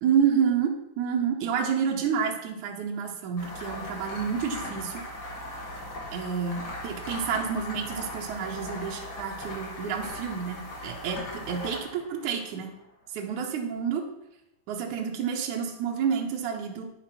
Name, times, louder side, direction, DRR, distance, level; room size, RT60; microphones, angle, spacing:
voice 1, 0.0-5.0 6.1-12.7 13.1-14.1 14.7-16.9, right 7 dB, 70° right, 0 dB, 2.1 m, -29 dB
sound 1, 3.4-12.7, left 1 dB, 40° left, 1.6 m, -39 dB
10.0 x 6.0 x 5.8 m, 0.87 s
omnidirectional pair, 4.3 m